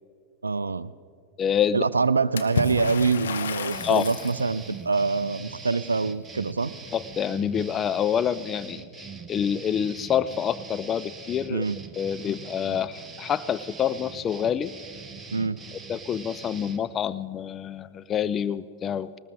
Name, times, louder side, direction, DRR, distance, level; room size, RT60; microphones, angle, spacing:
voice 1, 0.4-0.9 1.7-6.7 11.5-11.8 15.3-15.6, right 4 dB, 75° right, 16 dB, 0.3 m, -25 dB
voice 2, 1.4-1.8 3.8-4.1 6.9-11.6 11.9-14.7 15.7-19.2, left 8 dB, 25° left, 16 dB, 0.3 m, -27 dB
Water / Splash splatter, 2.4-4.4, left 5 dB, 65° left, 1.1 m, -31 dB
sound 1, 3.7-16.8, right 5 dB, 15° right, 1.0 m, -42 dB
20.0 x 19.0 x 3.7 m, 2.2 s
figure-of-eight pair, 95°, 0 cm